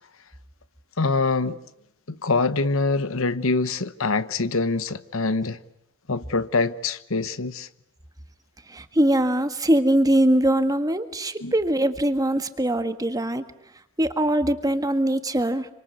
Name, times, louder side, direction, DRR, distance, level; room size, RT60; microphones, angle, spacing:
voice 1, 1.0-1.6 2.1-5.6 6.1-7.7 11.4-11.5, left 3 dB, 65° left, 1.1 m, -24 dB
voice 2, 8.7-13.4 14.0-15.7, right 1 dB, 15° right, 1.6 m, -22 dB
27.5 x 25.5 x 8.2 m
head